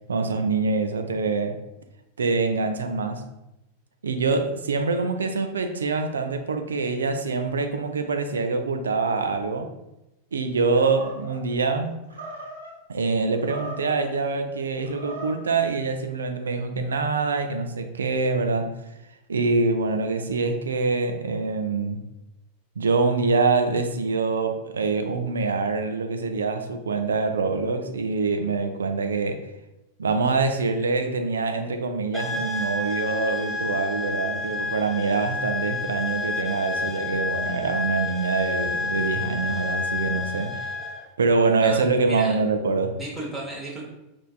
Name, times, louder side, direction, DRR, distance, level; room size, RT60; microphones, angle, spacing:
voice 1, 0.1-1.6 2.2-3.2 4.0-9.7 10.3-11.9 12.9-18.7 19.3-22.0 22.8-29.5 30.0-40.7 41.2-43.0, right 4 dB, 70° right, 7 dB, 0.3 m, -25 dB
Animal, 10.7-11.4 12.1-12.7 13.3-14.1 14.8-15.5, right 1 dB, 85° right, 0.9 m, -38 dB
sound 1, 32.1-41.1, left 3 dB, 10° left, 0.4 m, -30 dB
voice 2, 41.6-42.3 43.0-43.8, right 2 dB, 10° right, -5 dB, 0.8 m, -35 dB
4.3 x 2.5 x 2.3 m, 0.93 s
figure-of-eight pair, 90°, 0 cm